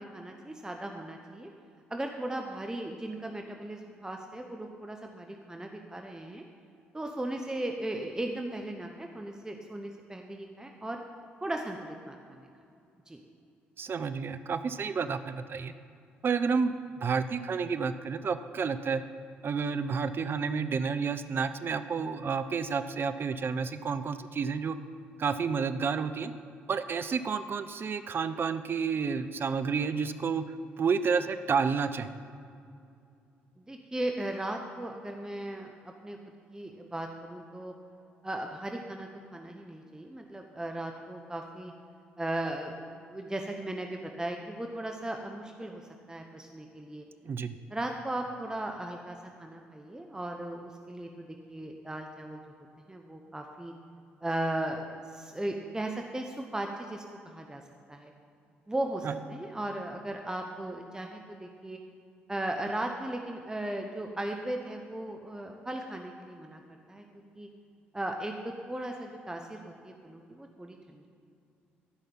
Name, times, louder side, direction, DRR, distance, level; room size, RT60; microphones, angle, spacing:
voice 1, 0.0-1.5 1.9-6.4 6.9-11.0 11.4-12.5 13.1-13.2 33.6-36.2 36.5-37.7 38.2-41.7 42.2-45.8 46.1-47.1 47.7-52.4 52.9-53.7 54.2-57.6 57.9-58.1 58.7-61.8 62.3-66.6 66.9-67.0 67.4-67.5 67.9-68.3 68.7-71.1, right 1 dB, 15° right, 3 dB, 1.0 m, -37 dB
voice 2, 13.8-15.7 16.2-19.0 19.4-24.8 25.2-26.3 26.7-32.1 47.2-47.6 59.0-59.1, right 5 dB, 45° right, 11 dB, 0.6 m, -30 dB
12.5 x 5.6 x 7.2 m, 2.5 s
hypercardioid pair, 50°, 5 cm